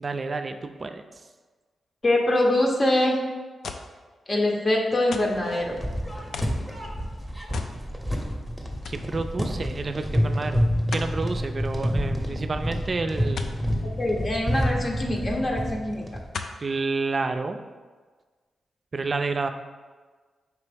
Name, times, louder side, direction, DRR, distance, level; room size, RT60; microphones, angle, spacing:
voice 1, 0.0-1.0 8.9-13.5 16.6-17.6 18.9-19.5, right 3 dB, 45° right, 8 dB, 0.3 m, -29 dB
voice 2, 2.0-3.2 4.3-5.8 14.0-16.0, left 1 dB, 40° left, 0 dB, 0.8 m, -23 dB
sound 1, 3.6-4.0 5.1-5.4 6.3-6.6 7.5-7.8 8.2-8.3 8.8-9.1 10.9-11.2 13.4-13.6 15.1-15.2 16.3-16.6 17.3-17.4, left 5 dB, 75° left, 0.3 m, -35 dB
sound 2, 5.3-16.3, equal, 10° left, 0.8 m, -28 dB
4.6 x 2.9 x 3.4 m, 1.4 s
cardioid pair, 50°, 0 cm